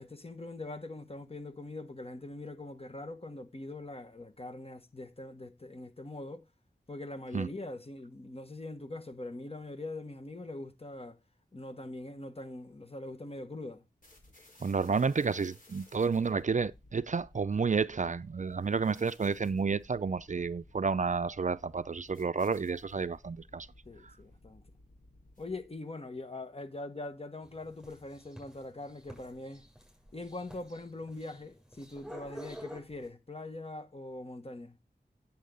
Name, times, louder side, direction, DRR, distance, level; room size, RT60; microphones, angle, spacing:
voice 1, 0.0-6.5 6.9-11.2 11.5-13.8 23.8-24.6 25.4-29.6 30.1-34.8, left 2 dB, 35° left, 1.3 m, -42 dB
sound 1, 14.0-25.8, left 1 dB, 55° left, 4.5 m, -58 dB
voice 2, 14.6-23.7 24.0-24.1, right 5 dB, 50° right, 0.5 m, -30 dB
sound 2, 27.4-33.1, equal, 5° right, 7.3 m, -49 dB
10.0 x 7.3 x 3.8 m
wide cardioid pair, 65°, 17 cm